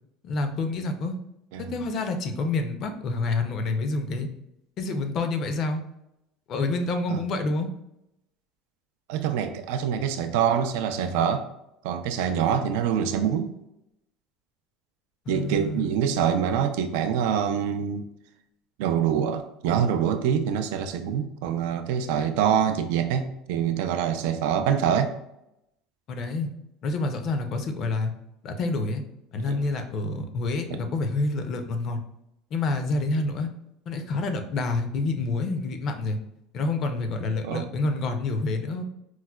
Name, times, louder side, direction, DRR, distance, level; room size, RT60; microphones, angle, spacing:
voice 1, 0.2-1.2 1.7-4.3 4.8-5.8 6.5-7.7 15.3-15.9 26.1-26.5 26.8-28.1 28.4-29.0 29.3-32.0 32.5-33.5 33.9-36.2 36.5-38.8, left 3 dB, 45° left, 6 dB, 0.5 m, -28 dB
voice 2, 9.1-11.5 11.8-13.5 15.3-18.1 18.8-25.1 29.5-29.6 37.4-37.7, right 8 dB, 80° right, 8 dB, 0.3 m, -25 dB
4.5 x 2.1 x 2.2 m, 0.83 s
supercardioid pair, 130°, 0 cm